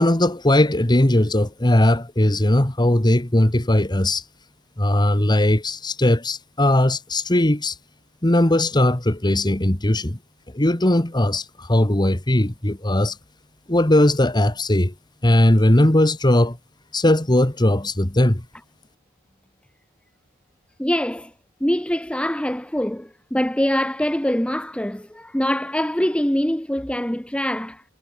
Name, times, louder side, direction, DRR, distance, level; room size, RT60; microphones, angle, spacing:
voice 1, 0.0-4.2 4.8-7.7 8.2-10.2 10.5-13.2 13.7-14.9 15.2-16.6 16.9-18.4, left 1 dB, 20° left, 1.6 m, -18 dB
voice 2, 20.8-21.3 21.6-27.8, equal, 5° left, 1.2 m, -24 dB
head